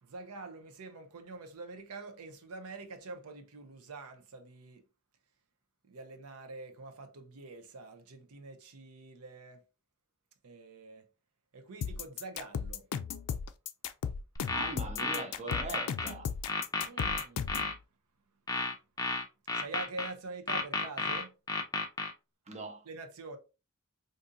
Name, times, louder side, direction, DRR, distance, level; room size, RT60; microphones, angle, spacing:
voice 1, 0.0-4.8 5.9-9.6 10.4-11.1 11.5-12.9 16.8-17.7 19.5-21.3 22.9-23.4, right 3 dB, 80° right, 0.6 m, -45 dB
sound 1, 11.8-17.7, left 7 dB, 85° left, 0.4 m, -36 dB
sound 2, 14.4-16.1 16.5-17.7 18.5-20.1 20.5-22.1, left 3 dB, 15° left, 0.5 m, -32 dB
voice 2, 14.5-16.3 22.5-22.9, right 3 dB, 30° right, 0.6 m, -41 dB
3.8 x 2.6 x 2.6 m
head